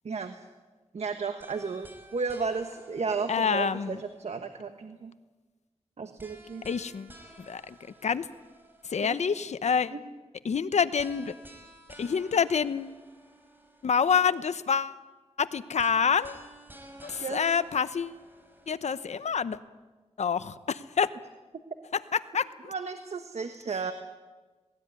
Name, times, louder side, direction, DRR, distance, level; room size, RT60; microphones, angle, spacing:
voice 1, 0.0-0.4 0.9-5.1 6.0-6.6 9.0-9.2 9.9-10.0 17.2-17.4 22.7-23.9, right 5 dB, 65° right, 7 dB, 1.4 m, -33 dB
sound 1, 1.4-4.5 6.2-9.2 11.0-14.1 15.8-19.2, right 1 dB, 15° right, 5.1 m, -53 dB
voice 2, 3.3-4.0 6.6-8.3 8.8-9.9 10.4-11.4 12.0-13.0 13.8-15.0 15.4-16.4 17.0-18.2 18.7-19.6 20.2-21.1 21.9-22.7, left 6 dB, 75° left, 14 dB, 0.9 m, -27 dB
19.0 x 19.0 x 9.6 m, 1.3 s
wide cardioid pair, 70°, 12 cm